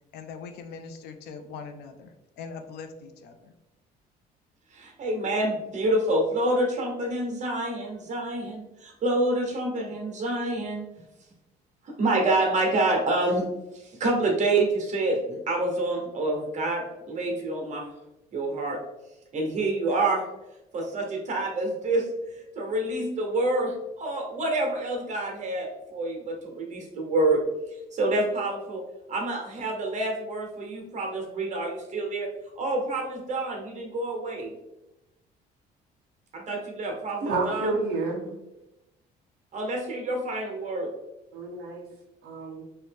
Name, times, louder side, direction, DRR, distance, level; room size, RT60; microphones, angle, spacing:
voice 1, 0.1-3.5, left 5 dB, 75° left, 7 dB, 0.5 m, -41 dB
voice 2, 4.7-10.8 11.8-13.4 13.7-17.9 18.3-18.8 19.3-20.2 20.7-27.4 27.9-28.8 29.1-32.3 32.6-34.5 36.3-37.7 39.5-40.9, right 2 dB, 45° right, 1 dB, 1.0 m, -27 dB
voice 3, 37.2-38.3 41.3-41.9 42.2-42.6, right 3 dB, 75° right, -1 dB, 0.9 m, -29 dB
2.9 x 2.7 x 3.4 m, 0.95 s
cardioid pair, 110°, 17 cm